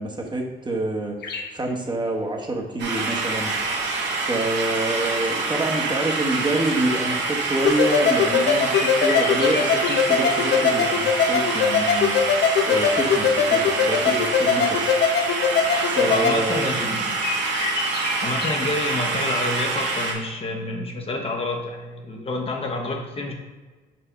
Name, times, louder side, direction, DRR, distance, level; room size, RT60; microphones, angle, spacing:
voice 1, 0.0-12.2 12.6-15.0 15.4-16.7, right 2 dB, 25° right, 1 dB, 1.0 m, -27 dB
sound 1, 1.2-1.5 2.6-2.7 3.6-8.3 8.7-10.0 10.3-10.7 11.0-11.4 12.2-14.0 14.3-14.9 15.1-15.2 15.5-16.6 16.9-18.5 18.9-19.0 19.3-19.8 20.1-20.2, left 5 dB, 70° left, 1.1 m, -34 dB
sound 2, 2.8-20.1, right 3 dB, 90° right, 1.5 m, -26 dB
sound 3, 7.6-16.4, left 6 dB, 90° left, 0.7 m, -21 dB
voice 2, 16.1-17.2 18.2-23.3, left 2 dB, 35° left, 2 dB, 0.8 m, -28 dB
4.4 x 4.2 x 5.6 m, 1.3 s
cardioid pair, 135°, 18 cm